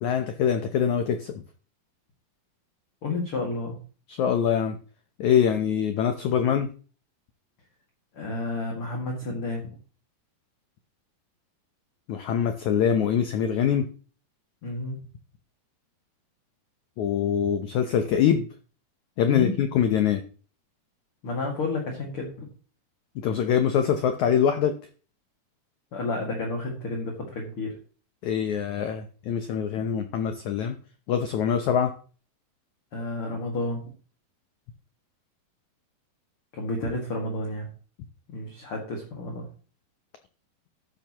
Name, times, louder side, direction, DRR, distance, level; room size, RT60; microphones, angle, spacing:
voice 1, 0.0-1.4 4.1-4.8 5.2-6.7 12.1-13.9 17.0-18.5 19.2-20.2 23.1-24.7 28.2-30.7 31.1-31.9, left 8 dB, 80° left, 8 dB, 1.7 m, -24 dB
voice 2, 3.0-3.8 8.1-9.7 14.6-15.0 19.3-19.6 21.2-22.5 25.9-27.8 32.9-33.9 36.5-37.7 38.3-39.5, left 2 dB, 40° left, 0 dB, 2.4 m, -31 dB
13.0 x 10.0 x 3.0 m, 0.39 s
omnidirectional pair, 4.6 m